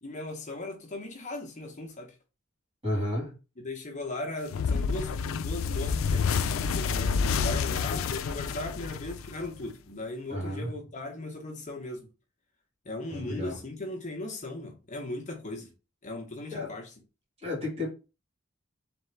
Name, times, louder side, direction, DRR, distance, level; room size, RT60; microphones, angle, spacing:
voice 1, 0.0-2.1 3.6-12.1 12.8-15.7 16.0-16.9, left 2 dB, 35° left, 0.9 m, -38 dB
voice 2, 2.8-3.3 10.3-10.7 13.1-13.6 16.5-16.7 17.4-17.9, left 1 dB, 30° right, 2.4 m, -32 dB
sound 1, 4.5-9.7, left 5 dB, 85° left, 0.4 m, -29 dB
3.7 x 3.5 x 3.3 m
head